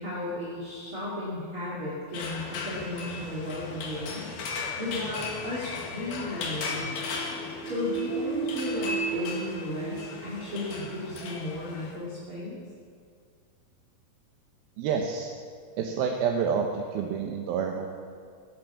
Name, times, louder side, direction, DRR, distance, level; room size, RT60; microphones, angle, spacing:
voice 1, 0.0-4.3 4.8-7.0 7.6-12.6, left 2 dB, 40° right, -8 dB, 3.2 m, -34 dB
sound 1, 2.1-11.9, left 3 dB, 85° left, 3.8 m, -36 dB
sound 2, 6.5-11.0, right 6 dB, 60° right, 3.9 m, -35 dB
voice 2, 14.8-15.3 15.8-17.9, right 6 dB, 85° right, 2 dB, 2.8 m, -28 dB
16.5 x 11.5 x 7.3 m, 2.1 s
omnidirectional pair, 4.2 m